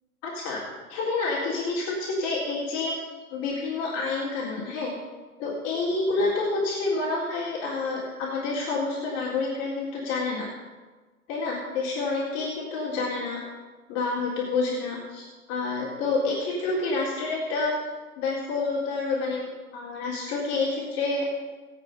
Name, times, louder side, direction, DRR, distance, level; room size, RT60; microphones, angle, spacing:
voice 1, 0.2-0.6 0.9-2.9 3.3-4.9 5.4-10.5 11.3-13.4 13.9-17.7 18.2-21.2, left 3 dB, 35° left, -5 dB, 3.8 m, -28 dB
20.5 x 8.6 x 5.5 m, 1.3 s
hypercardioid pair, 125°, 45 cm